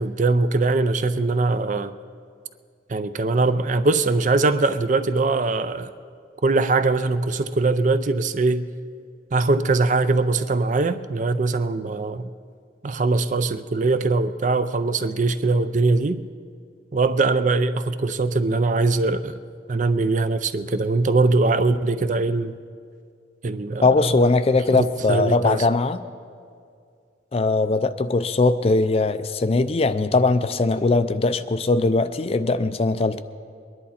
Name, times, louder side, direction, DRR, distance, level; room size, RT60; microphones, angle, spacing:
voice 1, 0.0-1.9 2.9-5.9 6.4-8.7 9.3-12.3 12.8-16.2 16.9-19.4 19.7-22.5 23.4-24.1 24.7-25.6, right 3 dB, 40° right, 0.4 m, -21 dB
voice 2, 23.8-26.0 27.3-33.2, left 3 dB, 30° left, 0.4 m, -20 dB
22.0 x 11.0 x 4.2 m
head